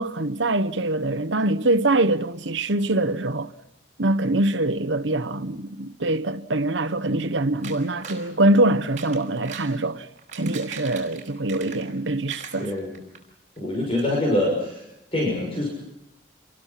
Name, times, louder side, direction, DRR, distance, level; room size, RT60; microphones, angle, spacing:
voice 1, 0.0-3.5 4.0-10.1 10.4-12.7, right 2 dB, 80° right, 1.1 m, -23 dB
sound 1, 7.6-8.3 8.8-9.7 10.2-12.0 12.3-13.2 13.6-13.7 14.0-14.1, right 6 dB, 40° right, 6.3 m, -40 dB
voice 2, 12.6-13.0 13.6-14.8 15.1-15.7, left 1 dB, 30° left, 6.4 m, -25 dB
29.5 x 23.0 x 5.9 m
head